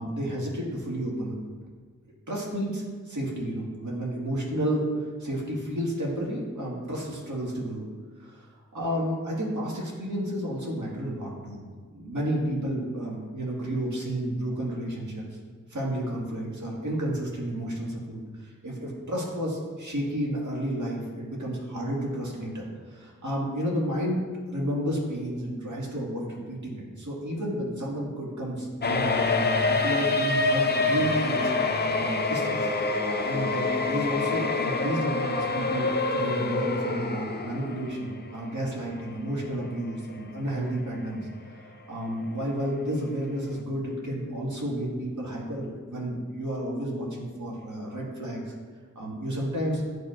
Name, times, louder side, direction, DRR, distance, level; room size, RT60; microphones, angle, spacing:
voice 1, 0.0-1.4 2.3-4.9 5.2-7.8 8.2-11.6 11.9-15.2 15.7-24.2 24.5-31.5 31.9-32.7 33.2-41.3 41.9-48.5 49.0-49.8, right 1 dB, 65° right, -4 dB, 1.9 m, -31 dB
sound 1, 28.8-38.1 38.4-38.5 39.4-39.5 39.9-40.0, left 3 dB, 30° left, 0.5 m, -26 dB
10.5 x 5.0 x 2.5 m, 1.6 s
wide cardioid pair, 70°, 32 cm